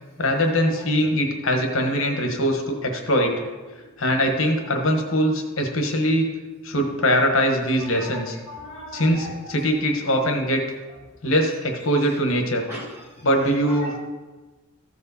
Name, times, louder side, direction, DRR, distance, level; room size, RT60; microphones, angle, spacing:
voice 1, 0.2-3.3 4.0-6.3 6.6-8.3 8.9-10.6 11.2-12.6 13.2-14.0, equal, 75° left, 3 dB, 1.2 m, -22 dB
voice 2, 7.9-9.6 12.7-12.8 13.7-14.0, left 1 dB, 10° right, -6 dB, 2.5 m, -38 dB
14.5 x 4.8 x 4.2 m, 1.2 s
head